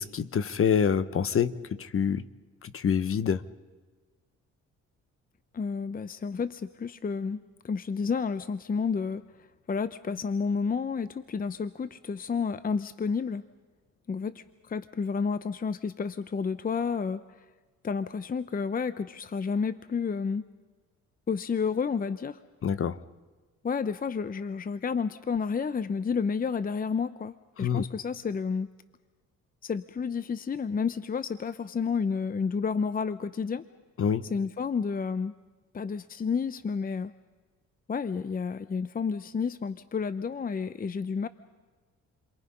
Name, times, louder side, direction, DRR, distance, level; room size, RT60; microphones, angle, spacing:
voice 1, 0.0-2.2 2.6-3.4 22.6-23.0 27.6-27.8 34.0-34.2, left 7 dB, 45° left, 15 dB, 1.1 m, -26 dB
voice 2, 5.5-7.4 7.6-9.2 9.7-13.4 14.1-17.4 17.8-20.4 21.3-22.4 23.6-28.7 29.6-33.6 34.2-35.3 35.7-37.1 37.9-41.3, left 5 dB, 30° left, 14 dB, 0.7 m, -30 dB
29.5 x 23.5 x 5.5 m, 1.4 s
cardioid pair, 90°, 30 cm